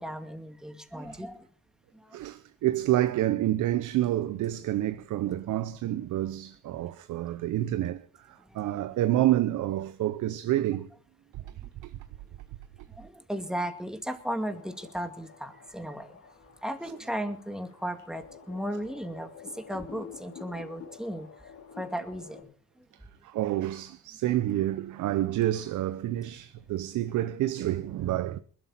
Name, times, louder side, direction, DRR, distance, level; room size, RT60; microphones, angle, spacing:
voice 1, 0.0-1.5 1.9-2.2 8.5-8.6 11.6-11.7 13.0-16.2 16.6-21.3 21.8-22.5, equal, ahead, 2.2 m, -36 dB
voice 2, 2.1-10.9 23.2-28.4, right 13 dB, 80° right, 0.8 m, -28 dB
sound 1, 14.5-22.4, left 6 dB, 75° left, 4.3 m, -49 dB
21.0 x 12.5 x 4.2 m
cardioid pair, 90°, 30 cm